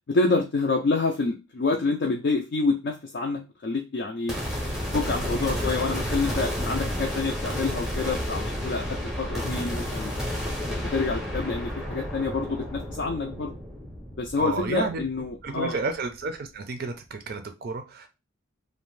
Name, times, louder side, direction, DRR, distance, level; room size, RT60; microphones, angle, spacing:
voice 1, 0.1-4.3 4.9-10.2 10.7-13.5 14.2-15.8, left 3 dB, 50° left, 0 dB, 0.4 m, -27 dB
sound 1, 4.3-15.6, equal, ahead, 0.6 m, -31 dB
voice 2, 14.4-15.0 15.4-18.1, right 3 dB, 45° right, 7 dB, 0.4 m, -31 dB
2.5 x 2.1 x 3.1 m, 0.26 s
head